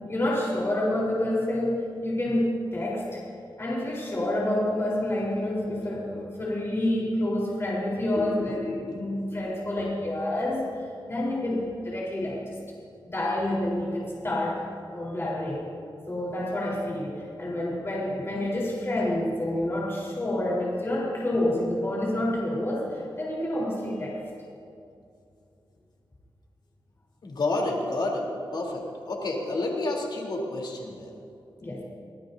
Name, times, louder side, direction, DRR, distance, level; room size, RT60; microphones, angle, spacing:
voice 1, 0.0-3.2 3.6-12.6 13.0-15.6 16.1-24.2 31.6-31.8, left 1 dB, 30° left, -5 dB, 4.2 m, -28 dB
voice 2, 8.2-9.4 27.2-31.2, left 2 dB, 60° left, -1 dB, 3.6 m, -30 dB
25.5 x 18.5 x 2.8 m, 2.5 s
wide cardioid pair, 95°, 8 cm